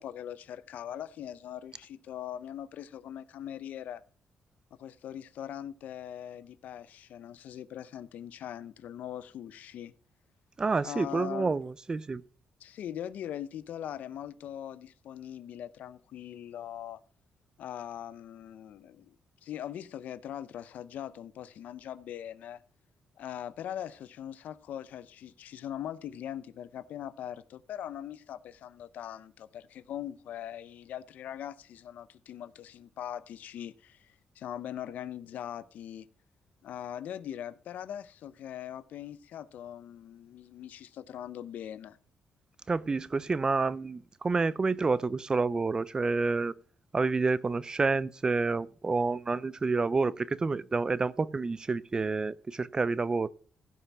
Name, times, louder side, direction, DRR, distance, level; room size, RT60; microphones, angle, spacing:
voice 1, 0.0-4.0 4.8-9.9 10.8-11.5 12.6-17.0 17.6-19.2 19.4-22.6 23.2-36.1 36.6-42.0, left 10 dB, 75° left, 0.7 m, -41 dB
voice 2, 10.6-12.2 42.7-46.5 46.9-53.3, right 4 dB, 30° right, 0.6 m, -29 dB
15.5 x 5.6 x 6.0 m
cardioid pair, 95°, 3 cm